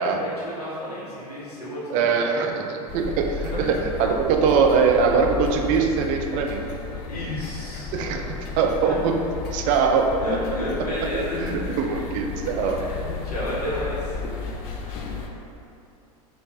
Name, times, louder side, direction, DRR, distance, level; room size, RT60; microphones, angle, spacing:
voice 1, 0.0-2.1 3.5-3.7 7.1-7.9 8.8-9.0 10.2-11.6 11.9-12.1 12.4-14.2, left 1 dB, 85° left, -8 dB, 1.1 m, -32 dB
voice 2, 1.9-6.6 7.9-8.3 8.6-9.2 9.5-10.2 11.1-12.8, right 5 dB, 40° right, 3 dB, 0.4 m, -22 dB
sound 1, 2.9-15.3, left 5 dB, 40° left, 0.5 m, -33 dB
3.3 x 2.5 x 3.3 m, 2.7 s
hypercardioid pair, 90°, 20 cm